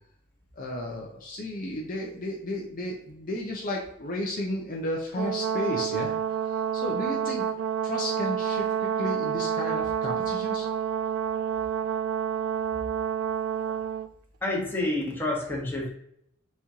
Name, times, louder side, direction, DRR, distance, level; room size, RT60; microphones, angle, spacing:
voice 1, 0.6-6.1 6.4-7.5 7.8-10.7, left 1 dB, 45° left, -1 dB, 0.7 m, -33 dB
Brass instrument, 5.1-14.1, right 9 dB, 75° right, 0.3 m, -29 dB
voice 2, 14.4-15.9, left 2 dB, 10° left, -4 dB, 1.2 m, -28 dB
4.2 x 3.1 x 3.6 m, 0.73 s
head